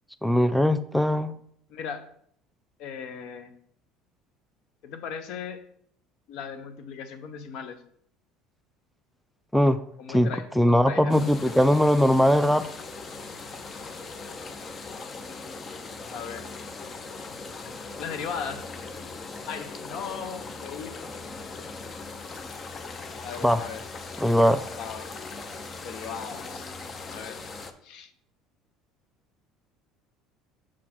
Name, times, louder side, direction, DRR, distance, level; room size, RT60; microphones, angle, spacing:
voice 1, 0.2-1.3 9.5-9.8 10.1-12.7 23.4-23.6 24.2-24.7, equal, ahead, 12 dB, 0.3 m, -21 dB
voice 2, 1.7-2.1 2.8-3.5 4.8-5.6 6.3-7.8 10.0-11.1 16.1-16.6 18.0-18.7 19.5-21.0 21.4-21.5 23.2-23.8 24.7-25.1 25.8-26.7 27.0-27.4 27.8-28.1, left 6 dB, 65° left, 9 dB, 0.8 m, -37 dB
sound 1, 11.1-27.7, left 4 dB, 35° left, 0.6 m, -39 dB
6.2 x 4.1 x 4.3 m, 0.64 s
supercardioid pair, 100°, 0 cm